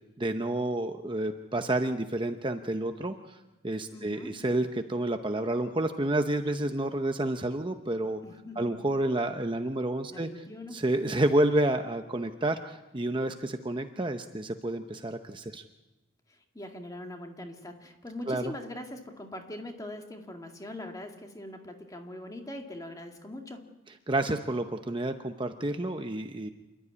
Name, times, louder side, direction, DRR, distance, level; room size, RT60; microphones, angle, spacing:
voice 1, 0.2-3.4 3.6-8.2 8.6-10.3 10.7-15.6 18.3-18.5 24.1-26.5, right 1 dB, 25° right, 6 dB, 0.8 m, -29 dB
voice 2, 3.9-4.4 8.2-8.9 10.1-10.8 16.3-23.8, left 1 dB, 20° left, 3 dB, 2.1 m, -42 dB
27.5 x 12.5 x 9.7 m, 1.1 s
head